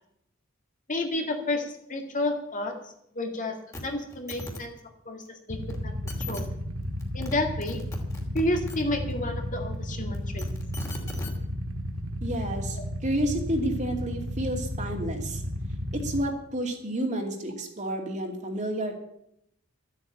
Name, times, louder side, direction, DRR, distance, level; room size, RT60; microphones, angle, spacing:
voice 1, 0.9-2.8 3.1-3.6 3.8-4.7 5.1-5.9 6.3-6.5 7.1-7.8 8.3-10.5, left 2 dB, 40° left, 3 dB, 2.1 m, -30 dB
sound 1, 3.7-3.8 4.1-4.6 5.7-5.8 6.1-6.4 7.0-7.3 7.6-8.8 10.1-11.3 12.3-12.4, left 1 dB, 15° left, 2.7 m, -37 dB
Motorcycle / Idling, 5.5-16.2, equal, 85° right, 1.9 m, -33 dB
voice 2, 12.2-15.4 15.9-18.9, right 1 dB, 35° right, 2 dB, 2.6 m, -30 dB
12.5 x 8.5 x 8.7 m, 0.74 s
head